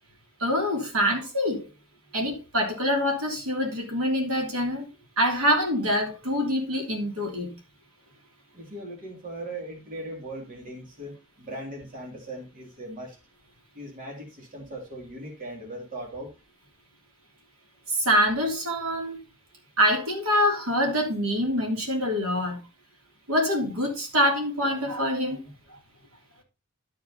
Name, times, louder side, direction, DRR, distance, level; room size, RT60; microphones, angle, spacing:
voice 1, 0.4-1.6 2.1-4.8 5.2-7.5 17.9-19.2 19.8-22.6 23.3-25.4, equal, 70° right, 3.3 m, -25 dB
voice 2, 8.5-13.2 13.7-16.3, right 1 dB, 40° right, 2.5 m, -39 dB
12.5 x 4.9 x 4.1 m
head